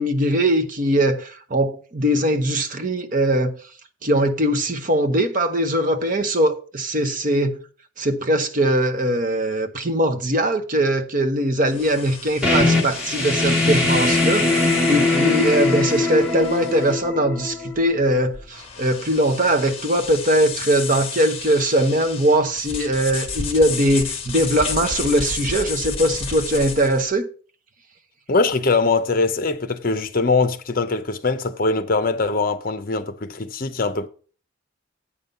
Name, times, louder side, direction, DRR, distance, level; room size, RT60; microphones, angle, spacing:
voice 1, 0.0-3.5 4.0-7.6 8.0-27.3, right 1 dB, 40° right, 0.9 m, -21 dB
sound 1, 11.7-27.1, left 5 dB, 30° left, 1.2 m, -32 dB
sound 2, 12.4-17.9, left 2 dB, 5° right, 2.1 m, -21 dB
voice 2, 28.3-34.1, left 3 dB, 45° left, 0.7 m, -22 dB
8.6 x 5.4 x 5.4 m
head